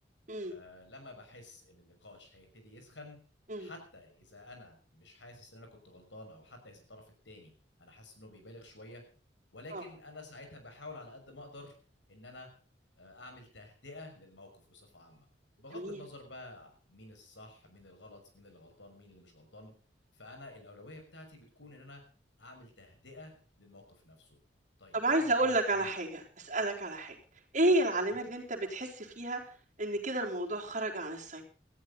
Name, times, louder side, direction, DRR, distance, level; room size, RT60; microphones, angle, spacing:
voice 1, 0.5-3.2 3.6-7.5 7.8-9.0 9.5-11.7 12.1-12.5 13.0-15.3 15.6-19.7 20.1-22.0 22.4-23.3 23.6-24.4 24.8-25.9, left 2 dB, 80° left, 5 dB, 6.2 m, -51 dB
voice 2, 24.9-27.2 27.5-31.4, right 2 dB, 40° right, 0 dB, 3.9 m, -31 dB
19.0 x 14.0 x 4.1 m, 0.39 s
head